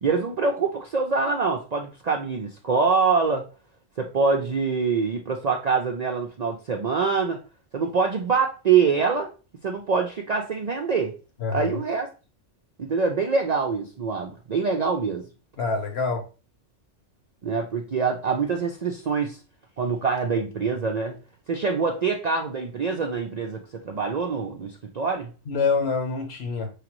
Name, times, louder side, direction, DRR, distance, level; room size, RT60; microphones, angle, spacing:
voice 1, 0.0-3.5 4.0-7.4 7.7-9.3 9.6-11.1 11.5-12.1 12.8-15.3 17.4-19.4 19.8-21.2 21.5-25.3, right 5 dB, 55° right, 2 dB, 0.4 m, -25 dB
voice 2, 15.6-16.2 25.5-26.7, left 4 dB, 60° left, 5 dB, 1.1 m, -26 dB
5.0 x 3.3 x 2.9 m, 0.33 s
omnidirectional pair, 1.2 m